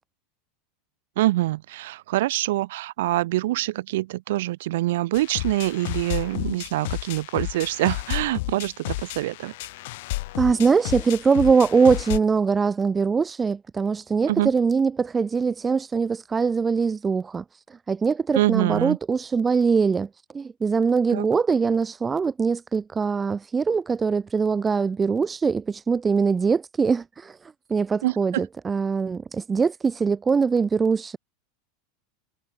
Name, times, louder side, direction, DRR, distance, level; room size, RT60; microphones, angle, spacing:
voice 1, 1.2-9.5 14.3-14.5 18.3-19.0 21.1-21.2 28.0-28.4, right 16 dB, 65° right, 0.4 m, -25 dB
sound 1, 5.1-12.2, left 20 dB, 55° left, 1.0 m, -32 dB
voice 2, 10.4-20.1 20.3-31.2, right 5 dB, 10° right, 0.7 m, -22 dB
supercardioid pair, 180°, 0 cm